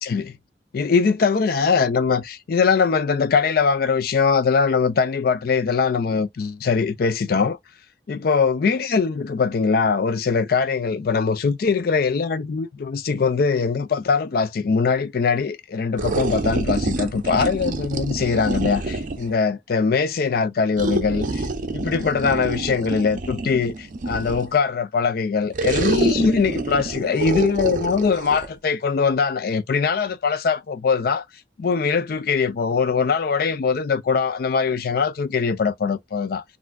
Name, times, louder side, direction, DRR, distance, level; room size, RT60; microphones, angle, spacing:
voice 1, 0.0-0.4 0.7-7.6 8.1-31.2 31.6-36.4, left 5 dB, 55° left, 0.4 m, -22 dB
sound 1, 16.0-19.3 20.8-24.6 25.5-28.5, right 2 dB, 45° right, 0.5 m, -27 dB
3.4 x 2.4 x 2.2 m
head